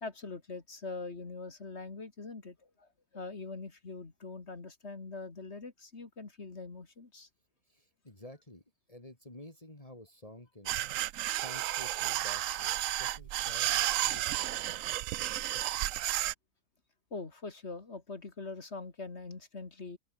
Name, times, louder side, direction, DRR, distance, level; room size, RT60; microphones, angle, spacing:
voice 1, 0.0-7.3 17.1-20.0, left 3 dB, 50° left, 2.5 m, -43 dB
voice 2, 7.7-8.6 8.9-10.8 11.3-14.8, left 1 dB, 25° left, 3.6 m, -51 dB
sound 1, 10.7-16.3, right 14 dB, 70° right, 0.9 m, -32 dB
open air
omnidirectional pair, 1.5 m